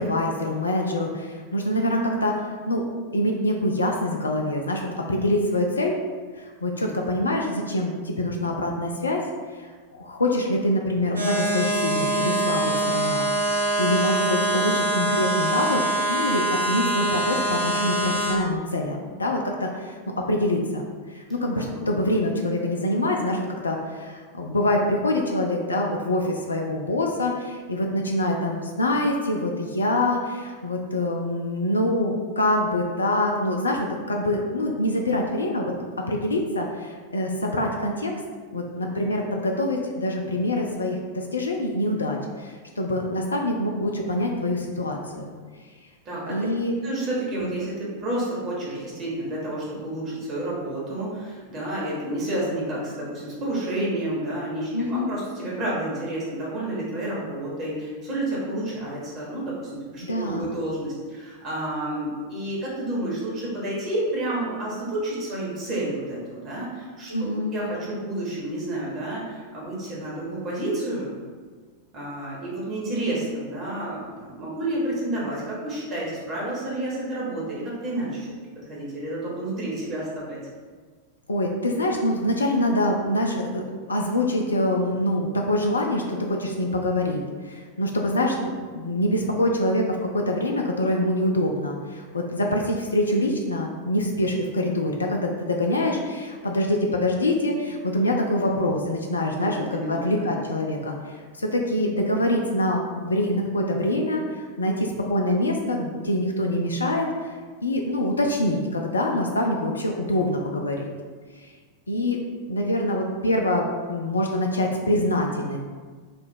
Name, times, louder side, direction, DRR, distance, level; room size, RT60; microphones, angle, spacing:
voice 1, 0.0-2.8 3.1-6.0 6.4-9.2 9.9-15.8 16.1-20.0 20.3-20.8 21.1-35.7 36.1-38.1 38.5-45.3 46.3-46.7 47.4-47.5 54.7-55.1 60.0-60.6 67.1-67.5 81.3-107.1 107.6-110.8 111.9-112.2 112.5-115.6, left 1 dB, 75° left, 1 dB, 0.4 m, -25 dB
sound 1, 11.1-18.3, right 1 dB, 80° right, 0.6 m, -24 dB
voice 2, 46.8-71.1 71.9-78.3 78.7-80.4 99.3-100.3, right 1 dB, 35° right, -6 dB, 1.3 m, -30 dB
3.3 x 2.4 x 4.3 m, 1.5 s
figure-of-eight pair, 90°, 0 cm